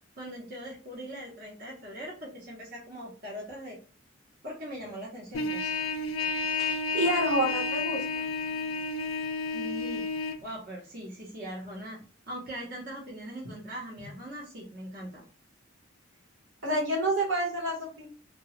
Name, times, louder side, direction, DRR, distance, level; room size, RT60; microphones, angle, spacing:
voice 1, 0.2-3.8 4.4-5.8 9.5-10.0 10.4-12.0 12.3-15.2, equal, 50° right, -4 dB, 0.8 m, -41 dB
Trumpet, 5.3-10.4, left 3 dB, 85° left, 0.4 m, -31 dB
voice 2, 6.6-8.2 16.6-18.1, right 1 dB, 70° right, 0 dB, 1.1 m, -28 dB
2.8 x 2.2 x 2.9 m, 0.38 s
head